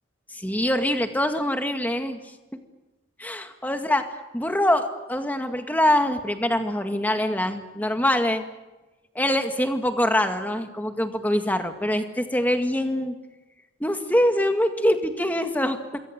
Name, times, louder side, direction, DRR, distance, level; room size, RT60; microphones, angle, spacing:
voice 1, 0.3-2.2 3.2-4.1 4.3-8.4 9.2-13.2 13.8-16.0, left 1 dB, 10° left, 6 dB, 2.0 m, -24 dB
26.5 x 22.0 x 7.8 m, 1.1 s
head